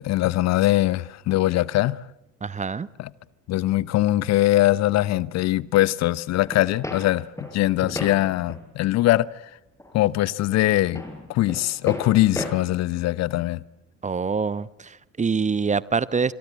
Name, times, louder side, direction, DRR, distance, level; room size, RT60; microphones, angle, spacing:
voice 1, 0.0-2.0 3.0-3.1 3.5-7.3 7.5-9.3 9.9-11.0 11.3-13.6, left 16 dB, 45° left, 0.9 m, -21 dB
voice 2, 2.4-2.9 14.0-16.3, right 5 dB, 20° right, 1.0 m, -25 dB
sound 1, 6.5-8.6 9.1-9.3 9.8-10.3 10.6-12.5, left 1 dB, 10° left, 5.9 m, -35 dB
27.0 x 23.0 x 7.7 m
figure-of-eight pair, 55°, 37 cm